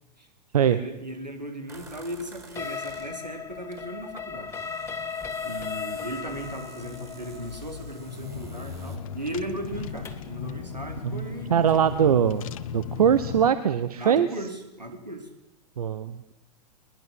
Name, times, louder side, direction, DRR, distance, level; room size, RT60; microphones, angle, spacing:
voice 1, 0.6-4.5 5.4-12.2 14.0-15.3, right 1 dB, 85° right, 5 dB, 4.3 m, -37 dB
sound 1, 1.7-3.8 4.1-9.0, right 5 dB, 15° right, 4.4 m, -48 dB
sound 2, 2.6-10.4, left 6 dB, 10° left, 2.4 m, -37 dB
Car / Engine, 6.3-13.5, left 8 dB, 55° left, 1.4 m, -37 dB
voice 2, 11.5-12.4 12.7-14.3 15.8-16.3, right 8 dB, 65° right, 13 dB, 1.2 m, -22 dB
21.5 x 21.0 x 8.0 m, 0.86 s
figure-of-eight pair, 100°, 21 cm